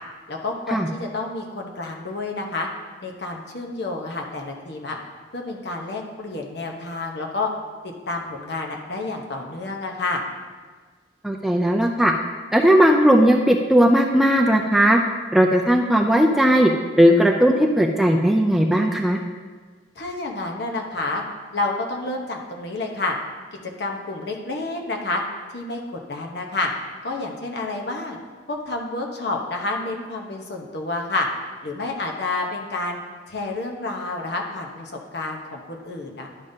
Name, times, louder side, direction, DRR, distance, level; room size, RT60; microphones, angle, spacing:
voice 1, 0.3-2.7 3.0-5.0 5.3-7.5 7.8-10.2 20.0-21.2 21.5-23.2 23.6-25.2 25.5-26.7 27.0-28.2 28.5-31.3 31.6-33.0 33.3-36.3, left 2 dB, 60° left, 1 dB, 0.9 m, -29 dB
voice 2, 11.2-12.1 12.5-15.0 15.3-16.7 17.0-19.2, equal, ahead, 1 dB, 0.3 m, -17 dB
10.5 x 5.1 x 2.7 m, 1.5 s
head